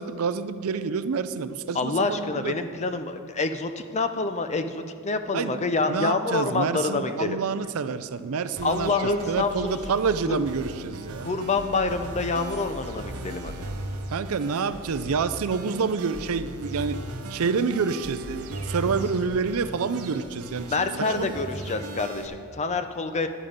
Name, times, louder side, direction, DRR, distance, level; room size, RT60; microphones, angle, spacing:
voice 1, 0.0-2.5 5.3-5.6 5.9-8.9 9.3-11.3 14.1-17.0 17.3-20.7 21.2-21.3, right 5 dB, 70° right, 13 dB, 0.5 m, -28 dB
voice 2, 1.7-7.4 8.6-9.8 10.3-10.4 11.2-13.7 20.7-23.3, left 3 dB, 30° left, 8 dB, 0.6 m, -27 dB
sound 1, 8.6-22.3, right 1 dB, 90° right, 0.9 m, -37 dB
10.5 x 10.0 x 5.1 m, 2.3 s
head